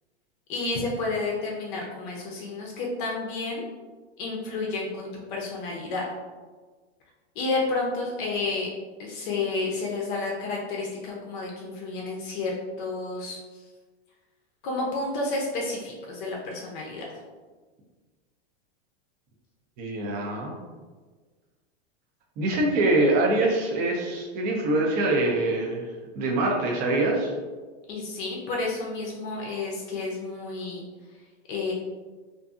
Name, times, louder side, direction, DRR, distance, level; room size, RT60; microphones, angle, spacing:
voice 1, 0.5-3.6 4.2-6.1 7.4-8.7 9.0-13.6 14.6-17.0 27.9-30.8 31.5-31.7, left 3 dB, 50° left, -2 dB, 0.6 m, -31 dB
voice 2, 19.8-20.5 22.4-25.9 26.2-27.3, right 2 dB, 30° right, -1 dB, 0.5 m, -24 dB
2.6 x 2.5 x 2.4 m, 1.4 s
supercardioid pair, 135°, 33 cm